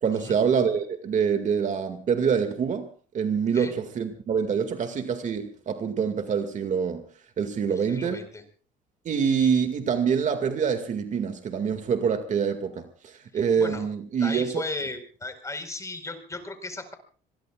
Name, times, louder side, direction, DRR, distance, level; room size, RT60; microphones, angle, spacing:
voice 1, 0.0-2.9 3.1-7.0 7.4-8.2 9.1-14.6, right 6 dB, 45° right, 2.2 m, -25 dB
voice 2, 7.7-8.4 13.3-13.9 14.2-16.9, left 2 dB, 20° left, 4.7 m, -36 dB
26.0 x 21.5 x 2.5 m
cardioid pair, 110°, 17 cm